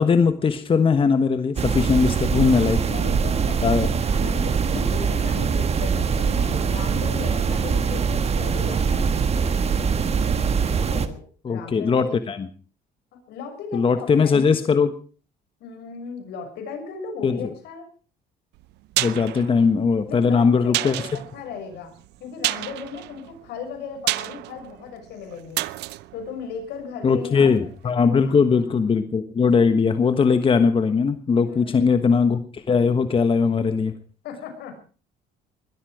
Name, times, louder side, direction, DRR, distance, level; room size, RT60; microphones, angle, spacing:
voice 1, 0.0-2.8 3.6-3.9 11.4-12.5 13.7-14.9 17.2-17.5 19.0-21.0 27.0-33.9, left 5 dB, 30° left, 10 dB, 1.3 m, -20 dB
sound 1, 1.6-11.1, right 6 dB, 40° right, 1.6 m, -23 dB
voice 2, 2.6-9.1 10.9-12.2 13.1-14.4 15.6-17.8 20.1-21.9 22.2-25.6 26.1-27.5 27.8-28.8 31.4-31.9 34.2-34.8, left 5 dB, 80° left, 5 dB, 6.2 m, -37 dB
sound 2, 18.5-27.4 27.7-27.8, right 18 dB, 85° right, 0.7 m, -31 dB
21.5 x 13.0 x 5.0 m, 0.39 s
cardioid pair, 110°, 17 cm